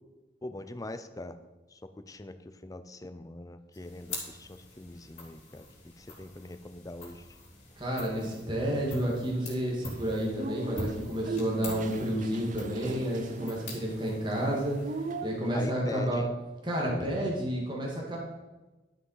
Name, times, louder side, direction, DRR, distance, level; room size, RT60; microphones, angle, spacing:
voice 1, 0.4-1.4 1.7-2.3 2.6-5.6 6.0-7.3 15.5-16.3, left 2 dB, 20° left, 10 dB, 0.6 m, -42 dB
sound 1, 3.7-15.4, left 2 dB, 40° left, 3.7 m, -45 dB
voice 2, 7.8-14.8 15.2-16.2 16.6-18.2, right 1 dB, 25° right, -3 dB, 2.4 m, -30 dB
sound 2, 9.8-15.6, right 3 dB, 45° right, 0.6 m, -40 dB
12.0 x 6.0 x 5.7 m, 1.1 s
head